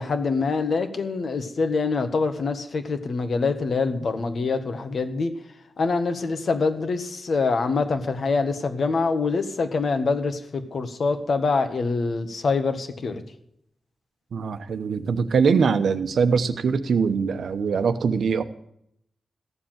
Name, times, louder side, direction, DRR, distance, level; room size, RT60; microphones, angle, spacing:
voice 1, 0.0-5.3 5.8-13.2, left 4 dB, 60° left, 7 dB, 1.6 m, -25 dB
voice 2, 14.3-18.4, right 5 dB, 85° right, 10 dB, 1.0 m, -22 dB
15.0 x 7.1 x 9.2 m, 0.74 s
wide cardioid pair, 135°, 0 cm